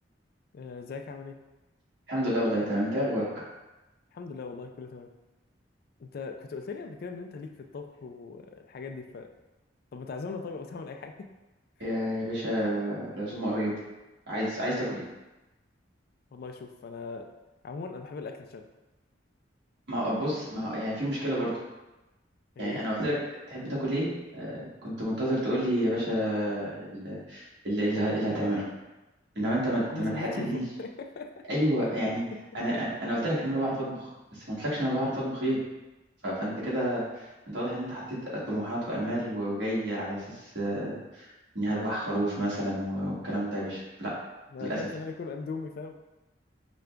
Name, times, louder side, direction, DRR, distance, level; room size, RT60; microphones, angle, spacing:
voice 1, 0.5-1.4 4.1-5.1 6.0-9.3 9.9-11.3 16.3-17.3 17.6-18.7 22.6-22.8 29.8-31.5 31.8-32.4 32.7-32.8 33.2-33.3 44.5-46.0, left 4 dB, 55° left, 5 dB, 0.3 m, -39 dB
voice 2, 2.1-3.4 11.8-13.7 14.3-15.0 19.9-21.5 22.6-23.1 23.5-28.7 29.3-30.6 31.5-32.2 32.5-35.6 36.2-44.1 44.6-44.8, equal, 65° right, -7 dB, 1.4 m, -30 dB
5.0 x 2.3 x 3.3 m, 1.0 s
head